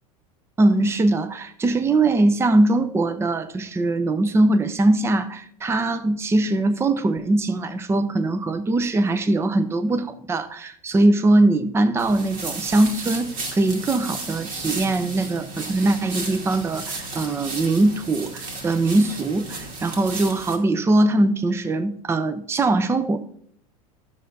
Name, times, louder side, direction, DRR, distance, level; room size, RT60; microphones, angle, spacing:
voice 1, 0.6-23.2, right 2 dB, 15° right, 9 dB, 0.6 m, -21 dB
sound 1, 12.0-20.6, right 3 dB, 50° right, 2.1 m, -34 dB
11.5 x 6.5 x 2.7 m, 0.65 s
hypercardioid pair, 100°, 18 cm